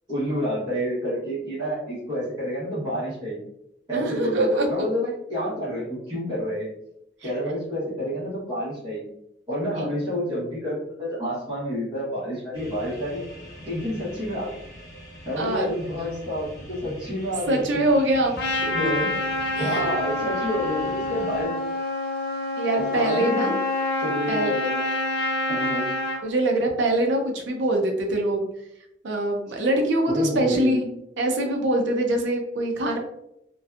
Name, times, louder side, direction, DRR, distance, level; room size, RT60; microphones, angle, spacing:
voice 1, 0.1-3.5 3.9-6.7 7.2-9.0 9.5-13.2 13.6-14.6 15.2-17.8 18.7-19.1 19.5-21.5 22.8-23.5 24.0-24.9 25.5-25.9 30.1-30.9, equal, 25° right, -12 dB, 1.0 m, -29 dB
voice 2, 3.9-4.7 7.5-7.6 9.7-9.9 15.4-15.7 17.5-18.9 19.5-19.9 22.6-23.6 24.3-24.5 26.2-28.5 29.0-30.8 31.2-33.0, right 1 dB, 80° right, 2 dB, 0.6 m, -24 dB
sound 1, 12.5-21.4, equal, 20° left, 0.8 m, -43 dB
Trumpet, 18.4-26.2, left 2 dB, 55° left, 0.5 m, -27 dB
2.6 x 2.2 x 2.3 m, 0.81 s
head